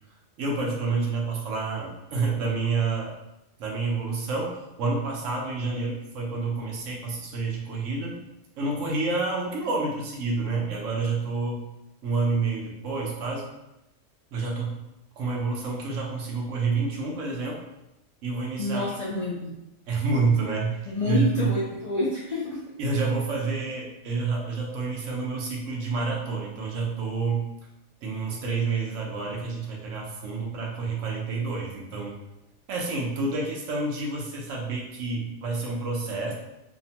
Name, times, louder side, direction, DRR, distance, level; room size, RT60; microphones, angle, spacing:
voice 1, 0.4-3.1 3.6-8.2 8.6-11.6 12.0-13.5 14.3-14.8 15.2-17.6 18.2-19.0 19.9-21.5 22.8-27.5 28.0-32.2 32.7-36.3, right 4 dB, 80° right, -1 dB, 1.0 m, -28 dB
voice 2, 18.6-19.6 20.8-22.6, left 2 dB, 75° left, -5 dB, 0.3 m, -28 dB
2.9 x 2.0 x 2.7 m, 0.90 s
omnidirectional pair, 1.3 m